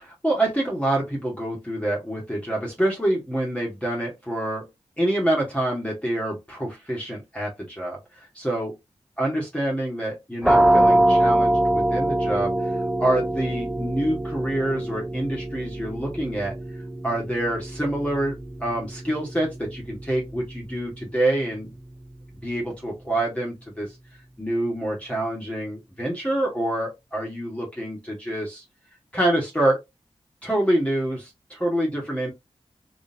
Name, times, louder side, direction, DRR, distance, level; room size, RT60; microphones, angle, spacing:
voice 1, 0.2-4.7 5.0-8.7 9.2-16.5 17.0-21.7 22.4-24.0 24.4-28.6 29.1-29.8 30.4-32.3, right 1 dB, 10° left, 1.5 m, -26 dB
sound 1, 10.4-21.9, right 1 dB, 5° right, 0.6 m, -24 dB
3.8 x 3.1 x 2.7 m
cardioid pair, 55°, 11 cm